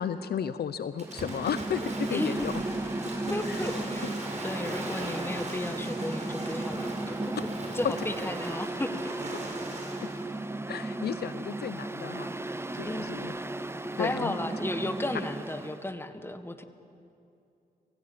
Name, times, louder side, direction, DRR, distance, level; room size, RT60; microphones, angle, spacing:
voice 1, 0.0-2.5 3.5-3.6 10.0-10.1 10.7-13.3 14.0-14.3, left 8 dB, 75° left, 13 dB, 0.7 m, -34 dB
Mechanical fan, 1.0-15.8, right 2 dB, 15° right, 0.9 m, -35 dB
Waves surf / Splash splatter, 1.0-10.3, right 2 dB, 45° right, 5.8 m, -40 dB
voice 2, 2.1-2.5 3.3-4.2 4.4-7.3 7.7-9.1 12.8-13.1 14.0-16.6, left 1 dB, 15° left, 9 dB, 1.6 m, -34 dB
24.0 x 16.0 x 8.7 m, 2.6 s
cardioid pair, 65°, 17 cm